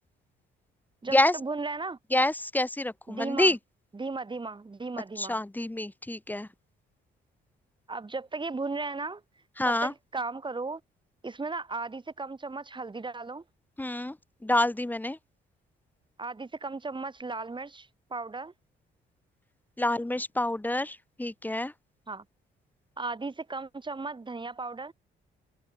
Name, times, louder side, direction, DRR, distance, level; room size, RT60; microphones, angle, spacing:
voice 1, 1.0-2.0 3.1-3.5 3.9-5.4 7.9-9.2 9.7-10.8 11.2-13.4 16.2-18.5 22.1-22.2 23.0-24.9, right 3 dB, 25° right, 3.5 m, -36 dB
voice 2, 2.1-3.6 5.2-6.5 9.6-9.9 13.8-14.2 14.4-15.2 19.8-21.7, left 1 dB, 10° left, 1.9 m, -27 dB
cardioid pair, 90°, 20 cm